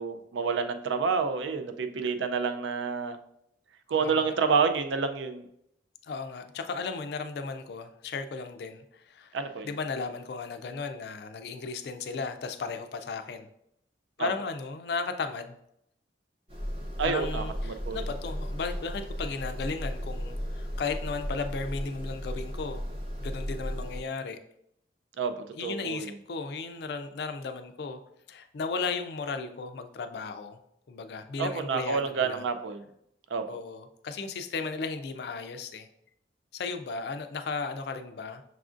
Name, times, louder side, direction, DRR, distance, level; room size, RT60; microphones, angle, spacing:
voice 1, 0.0-3.2 3.9-5.4 9.3-9.7 14.2-14.3 17.0-18.0 25.2-26.1 31.4-32.9 33.3-33.4, right 5 dB, 80° right, 8 dB, 0.4 m, -29 dB
voice 2, 4.0-4.3 6.0-9.3 9.6-13.5 14.2-15.6 17.0-22.8 23.2-24.4 25.6-28.0 28.3-30.6 30.9-32.4 33.5-35.9 36.5-38.4, left 4 dB, 60° left, 8 dB, 0.3 m, -35 dB
sound 1, 16.5-24.0, equal, 30° right, 0.6 m, -35 dB
6.0 x 2.4 x 2.5 m, 0.75 s
head